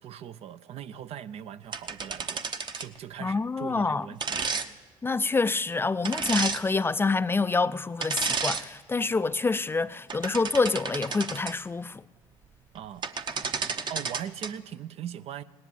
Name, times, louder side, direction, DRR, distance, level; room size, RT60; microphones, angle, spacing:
voice 1, 0.0-2.4 2.8-4.4 12.7-13.1 13.9-15.4, right 9 dB, 55° right, 0.6 m, -40 dB
sound 1, 1.7-3.0 4.2-4.7 6.0-6.6 8.0-8.7 9.1-9.3 9.9-11.5 12.8-12.9 13.0-14.5, right 5 dB, 40° right, 0.9 m, -31 dB
voice 2, 3.2-4.1 5.0-12.0, left 4 dB, 20° left, 0.4 m, -27 dB
18.0 x 10.5 x 7.4 m
supercardioid pair, 70°, 12 cm